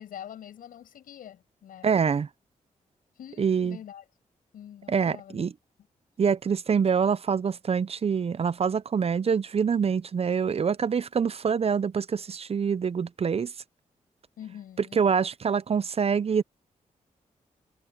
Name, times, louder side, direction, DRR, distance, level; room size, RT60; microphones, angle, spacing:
voice 1, 0.0-1.9 3.2-4.0 4.5-5.4 14.4-15.0, left 10 dB, 85° left, 7.3 m, -45 dB
voice 2, 1.8-2.3 3.4-3.8 4.9-5.5 6.2-13.5 15.0-16.4, right 6 dB, 45° right, 0.6 m, -25 dB
cardioid pair, 55°, 14 cm